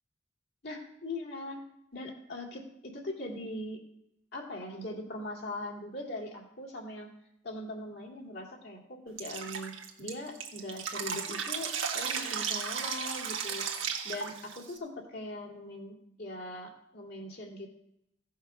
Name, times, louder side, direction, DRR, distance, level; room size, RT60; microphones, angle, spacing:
voice 1, 0.6-1.6 1.9-3.8 4.3-7.1 7.4-9.7 10.0-13.7 14.0-17.7, left 1 dB, 60° left, 0 dB, 2.5 m, -41 dB
Drip, 9.2-14.8, right 7 dB, 80° right, 1.3 m, -35 dB
15.5 x 5.7 x 5.7 m, 0.80 s
head